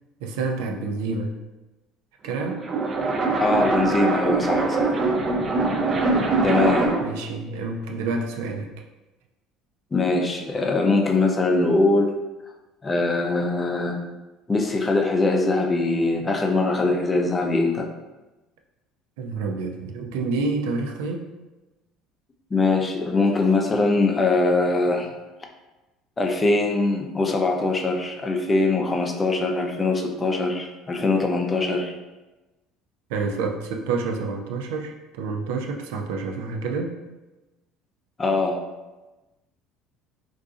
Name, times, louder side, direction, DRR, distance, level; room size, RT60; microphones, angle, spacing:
voice 1, 0.2-1.3 2.2-2.7 7.0-8.7 19.2-21.2 33.1-37.0, right 4 dB, 85° right, 3 dB, 0.4 m, -28 dB
sound 1, 2.3-7.2, right 3 dB, 35° right, 0.5 m, -23 dB
voice 2, 3.4-4.9 6.4-6.9 9.9-12.1 12.8-14.0 14.5-17.9 22.5-25.1 26.2-31.9 38.2-38.6, left 3 dB, 25° left, 2 dB, 0.5 m, -22 dB
3.7 x 2.5 x 2.4 m, 1.1 s
supercardioid pair, 100°, 0 cm